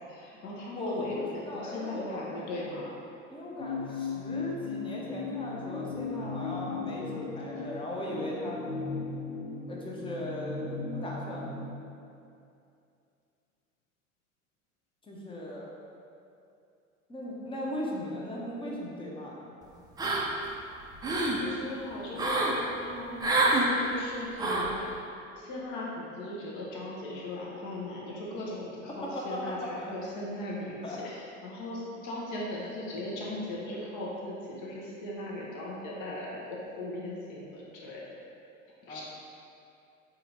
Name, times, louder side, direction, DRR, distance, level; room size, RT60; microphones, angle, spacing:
voice 1, 0.1-2.9 21.4-25.0 25.3-38.0 38.8-39.0, left 1 dB, 45° left, -4 dB, 1.1 m, -38 dB
voice 2, 0.7-2.5 3.3-8.6 9.7-11.6 15.0-15.7 17.1-19.5 29.0-29.2 29.8-29.9 30.8-31.0 38.9-39.0, left 1 dB, 15° left, -4 dB, 0.8 m, -37 dB
sound 1, 3.6-11.8, left 4 dB, 90° left, 0.7 m, -37 dB
sound 2, 20.0-20.5 20.8-21.4 22.2-22.6 23.2-23.7 24.4-24.7, right 2 dB, 10° right, 0.4 m, -26 dB
4.2 x 2.8 x 3.9 m, 2.6 s
hypercardioid pair, 80°, 41 cm